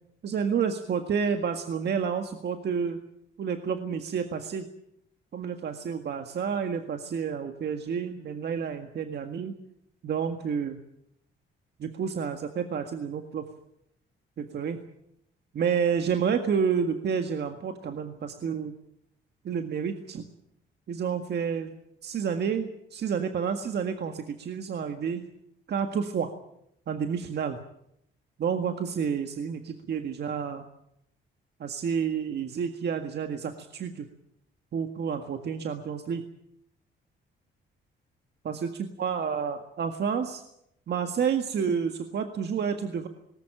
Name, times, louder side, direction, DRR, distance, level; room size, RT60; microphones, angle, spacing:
voice 1, 0.2-3.0 3.4-4.6 5.3-9.6 10.0-10.8 11.8-13.5 14.4-14.8 15.5-18.7 19.4-20.2 20.9-21.7 22.0-25.2 25.7-26.3 26.9-27.6 28.4-30.6 31.6-34.1 34.7-36.2 38.4-40.4 40.9-43.1, right 7 dB, 60° right, 6 dB, 1.8 m, -29 dB
19.5 x 17.5 x 9.0 m, 0.75 s
cardioid pair, 90°, 20 cm